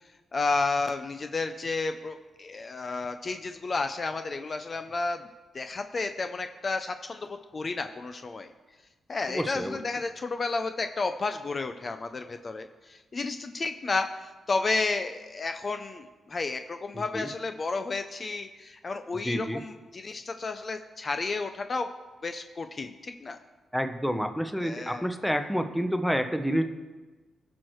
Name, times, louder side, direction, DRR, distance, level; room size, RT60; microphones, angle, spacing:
voice 1, 0.3-5.2 5.5-8.5 9.1-21.9 22.2-23.4 24.6-25.1, left 3 dB, 40° left, 7 dB, 0.5 m, -32 dB
voice 2, 9.3-9.8 17.1-17.3 19.2-19.6 23.7-26.6, equal, ahead, 7 dB, 0.9 m, -28 dB
17.0 x 6.3 x 3.1 m, 1.3 s
cardioid pair, 80°, 0 cm